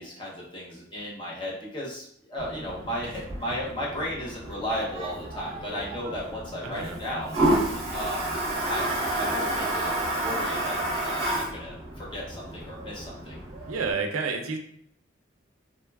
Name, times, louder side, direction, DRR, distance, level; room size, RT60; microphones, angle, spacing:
voice 1, 0.0-7.4 7.9-13.4, equal, 25° left, -5 dB, 0.7 m, -35 dB
Toilet flush, 2.4-13.9, right 1 dB, 30° right, 0.6 m, -30 dB
voice 2, 6.6-7.0 13.7-14.6, right 4 dB, 85° right, 4 dB, 0.4 m, -30 dB
3.0 x 2.2 x 2.2 m, 0.67 s
head